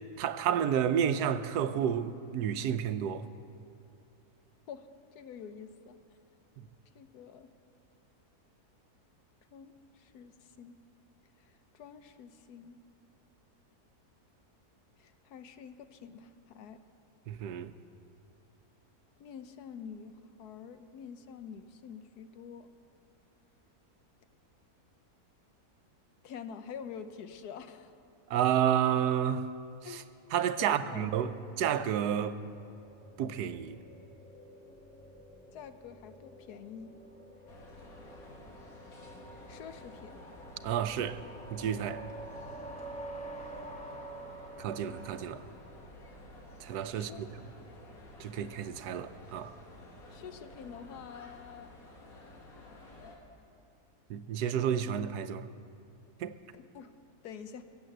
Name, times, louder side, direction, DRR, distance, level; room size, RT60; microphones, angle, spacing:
voice 1, 0.2-3.3 6.6-6.7 17.3-17.7 28.3-29.5 29.8-30.0 30.3-32.4 33.2-33.8 40.6-41.2 41.5-42.0 44.6-45.4 46.6-47.3 48.2-49.5 54.1-55.5 56.2-56.4, right 9 dB, 85° right, 1.2 m, -30 dB
voice 2, 5.1-6.0 6.9-7.5 9.5-10.8 11.4-12.8 15.0-16.8 19.2-20.1 20.4-22.7 26.2-27.9 29.8-30.1 30.6-31.1 35.5-36.9 39.5-40.2 46.9-47.2 47.6-47.7 50.1-51.7 56.5-56.9 57.2-57.6, left 7 dB, 85° left, 1.4 m, -47 dB
sound 1, 31.5-46.2, right 1 dB, 5° left, 1.1 m, -49 dB
sound 2, 37.5-53.2, left 1 dB, 65° left, 2.3 m, -52 dB
23.0 x 7.7 x 7.8 m
omnidirectional pair, 1.6 m